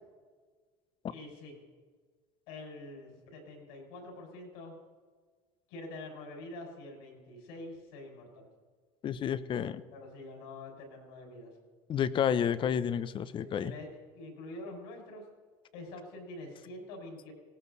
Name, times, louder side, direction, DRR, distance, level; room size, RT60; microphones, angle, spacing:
voice 1, 1.1-1.6 2.5-4.7 5.7-8.5 9.9-11.5 13.4-13.9 14.1-15.2 15.7-17.3, left 2 dB, 85° left, 1 dB, 5.9 m, -46 dB
voice 2, 9.0-9.8 11.9-13.7, left 8 dB, 40° left, 14 dB, 0.8 m, -30 dB
19.0 x 17.0 x 4.1 m, 1.5 s
supercardioid pair, 100°, 12 cm